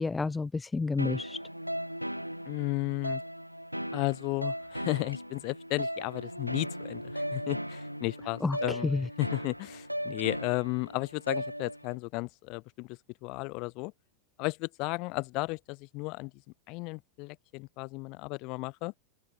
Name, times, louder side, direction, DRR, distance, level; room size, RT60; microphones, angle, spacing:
voice 1, 0.0-1.4 8.4-9.1, left 3 dB, 10° left, 0.6 m, -30 dB
sound 1, 1.0-12.0, equal, 90° right, 6.5 m, -37 dB
voice 2, 2.5-3.2 3.9-8.9 9.2-13.9 14.4-16.3 16.7-18.9, left 27 dB, 40° left, 6.2 m, -34 dB
sound 2, 5.1-5.5 10.1-10.3, left 1 dB, 85° left, 7.8 m, -49 dB
open air
figure-of-eight pair, 90°, 0 cm